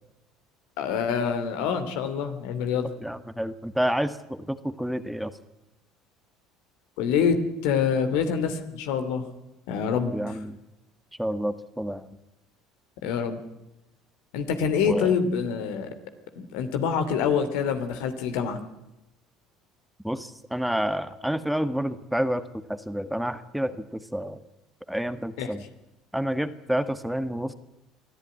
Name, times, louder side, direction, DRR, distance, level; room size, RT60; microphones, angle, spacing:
voice 1, 0.8-2.9 7.0-9.3 9.7-10.4 13.0-13.4 14.3-15.9 16.4-18.6 25.4-25.5, left 6 dB, 70° left, 8 dB, 2.7 m, -26 dB
voice 2, 3.0-5.3 10.1-10.6 11.2-12.0 14.8-15.2 20.0-24.4 24.9-25.6 26.1-27.5, equal, ahead, 11 dB, 1.5 m, -29 dB
23.0 x 14.0 x 9.5 m, 0.95 s
hypercardioid pair, 70°, 0 cm